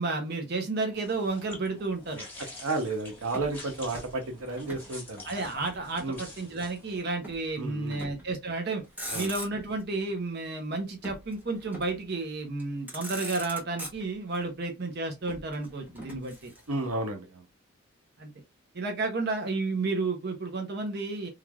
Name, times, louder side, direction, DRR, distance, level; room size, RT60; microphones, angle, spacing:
voice 1, 0.0-2.2 5.3-8.8 9.1-16.5 18.2-18.3 18.7-21.3, right 3 dB, 50° right, 0.6 m, -32 dB
sound 1, 0.9-7.1, left 2 dB, 10° left, 1.3 m, -47 dB
voice 2, 2.6-5.2 6.0-6.2 7.6-8.0 9.1-9.3 16.7-17.5, right 2 dB, 85° right, 0.8 m, -32 dB
Motor vehicle (road), 3.3-4.9 5.2-6.3 7.2-7.5 7.9-8.3 8.8-9.8 11.0-12.1 12.6-12.7 12.9-14.4 15.3-16.9, equal, 10° right, 0.8 m, -42 dB
3.2 x 2.4 x 2.2 m
head